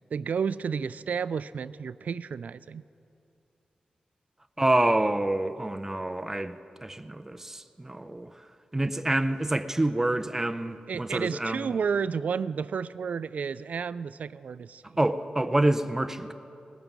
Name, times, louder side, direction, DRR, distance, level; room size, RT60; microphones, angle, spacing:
voice 1, 0.1-2.8 10.9-14.8, right 6 dB, 70° right, 17 dB, 0.3 m, -31 dB
voice 2, 4.6-8.5 8.7-11.7 15.0-16.3, right 1 dB, 15° right, 10 dB, 0.5 m, -27 dB
20.0 x 9.1 x 6.0 m, 2.7 s
wide cardioid pair, 130°, 3 cm